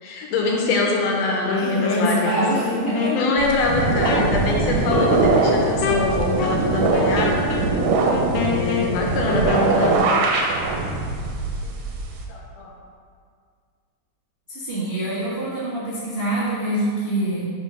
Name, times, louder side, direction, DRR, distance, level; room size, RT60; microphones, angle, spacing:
voice 1, 0.0-2.4 3.1-7.4 8.4-10.0 11.6-11.7 12.3-12.7, left 3 dB, 75° left, -1 dB, 1.8 m, -24 dB
Wind instrument woodwind instrument, 1.4-10.1, left 5 dB, 90° left, 1.3 m, -28 dB
voice 2, 1.6-3.2 14.5-17.5, right 1 dB, 90° right, -10 dB, 0.5 m, -25 dB
sound 1, 3.4-12.2, right 3 dB, 75° right, 1.9 m, -22 dB
5.5 x 5.3 x 5.3 m, 2.1 s
omnidirectional pair, 3.4 m